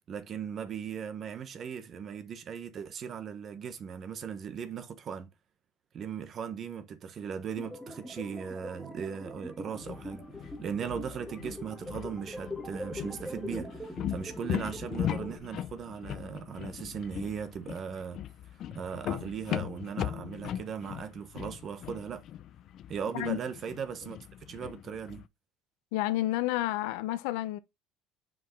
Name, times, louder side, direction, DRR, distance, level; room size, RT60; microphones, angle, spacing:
voice 1, 0.1-5.3 5.9-18.2 18.7-22.2 22.9-24.2 24.5-25.2, right 7 dB, 35° right, 1.0 m, -38 dB
sound 1, 7.5-15.4, equal, ahead, 1.4 m, -42 dB
sound 2, 9.7-25.3, left 11 dB, 45° left, 0.4 m, -39 dB
voice 2, 25.9-27.6, left 15 dB, 90° left, 0.7 m, -30 dB
5.8 x 5.0 x 3.7 m
cardioid pair, 155°, 0 cm